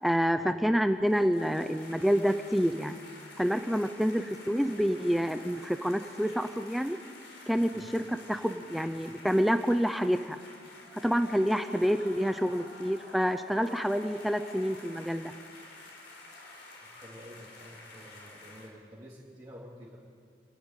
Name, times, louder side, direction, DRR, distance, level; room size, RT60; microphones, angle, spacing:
voice 1, 0.0-3.0 3.4-7.0 7.5-10.4 11.0-15.3, equal, ahead, 8 dB, 0.5 m, -28 dB
sound 1, 0.8-18.7, left 2 dB, 90° left, 4.1 m, -50 dB
voice 2, 16.9-20.1, equal, 25° right, -7 dB, 2.8 m, -49 dB
27.5 x 11.0 x 9.0 m, 2.1 s
head